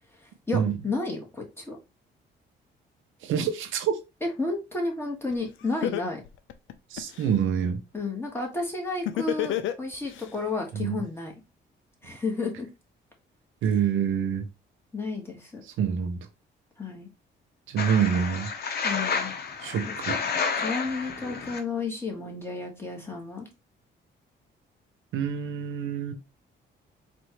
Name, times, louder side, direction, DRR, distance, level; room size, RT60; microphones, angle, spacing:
voice 1, 0.5-1.8 4.2-6.2 7.9-11.3 12.0-12.7 14.9-15.6 16.8-17.1 18.8-19.3 19.8-19.9 20.6-23.5, left 3 dB, 10° left, 1.6 m, -32 dB
voice 2, 3.2-4.0 6.9-7.8 10.7-11.0 13.6-14.5 15.8-16.2 17.7-18.5 19.6-20.2 25.1-26.1, right 7 dB, 85° right, 0.8 m, -26 dB
Laughter, 5.3-5.4 5.8-7.3 9.1-10.3, left 12 dB, 80° left, 0.5 m, -28 dB
sound 1, 17.8-21.6, left 5 dB, 55° left, 1.0 m, -30 dB
4.3 x 2.6 x 3.1 m
cardioid pair, 90°, 20 cm